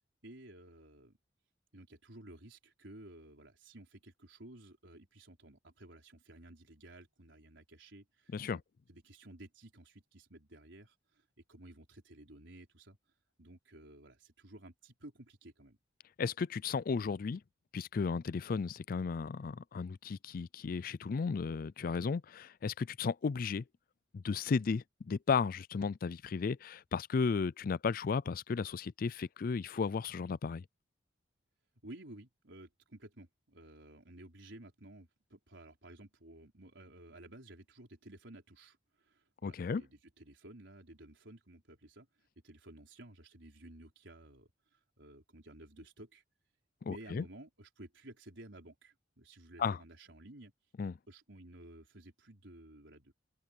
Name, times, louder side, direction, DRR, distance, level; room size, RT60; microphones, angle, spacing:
voice 1, 0.2-1.2 1.7-8.6 8.9-13.0 13.4-15.8 31.8-42.1 42.4-46.2 46.8-50.5 51.1-53.1, right 1 dB, 75° right, 4.5 m, -54 dB
voice 2, 16.2-17.4 17.7-23.6 24.1-30.6 39.4-39.8 46.8-47.2 49.6-49.8 50.8-50.9, left 5 dB, 50° left, 0.4 m, -34 dB
open air
head